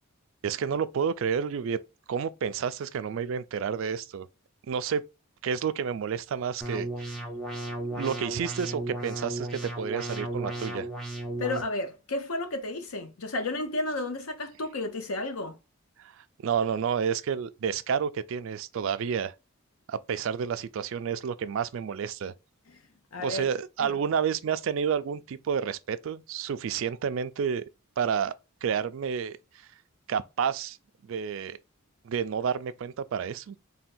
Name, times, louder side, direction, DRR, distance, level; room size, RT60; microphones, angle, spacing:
voice 1, 0.4-1.8 2.1-4.3 4.7-5.0 5.4-7.1 7.9-10.9 16.0-19.3 19.9-22.3 23.2-27.6 28.0-28.3 28.6-29.4 30.1-30.8 31.0-31.6 32.0-33.6, right 7 dB, 65° right, 0.3 m, -30 dB
sound 1, 6.6-11.6, right 1 dB, ahead, 0.7 m, -35 dB
voice 2, 11.4-15.5 22.7-22.8 23.1-23.5 23.8-24.0, left 2 dB, 80° left, 0.8 m, -32 dB
3.5 x 2.2 x 4.1 m
head